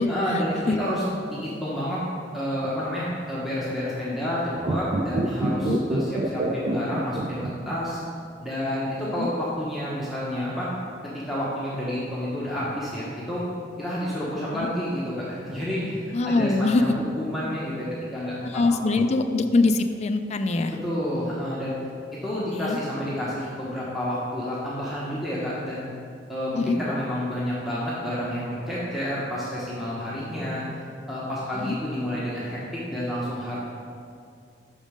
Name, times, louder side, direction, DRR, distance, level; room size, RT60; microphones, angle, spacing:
voice 1, 0.1-2.0 2.3-8.0 8.4-10.7 11.0-13.4 13.8-18.6 19.0-19.1 20.8-21.8 22.2-25.9 26.3-30.6 31.1-33.6, equal, ahead, -8 dB, 1.0 m, -29 dB
sound 1, 4.6-8.2, right 2 dB, 40° right, 0.4 m, -27 dB
voice 2, 5.5-5.8 9.1-9.3 14.5-14.7 16.1-16.8 18.5-20.8 22.5-22.8 26.6-26.8 31.6-31.8, left 3 dB, 40° left, 7 dB, 0.4 m, -23 dB
6.3 x 5.1 x 5.0 m, 2.3 s
head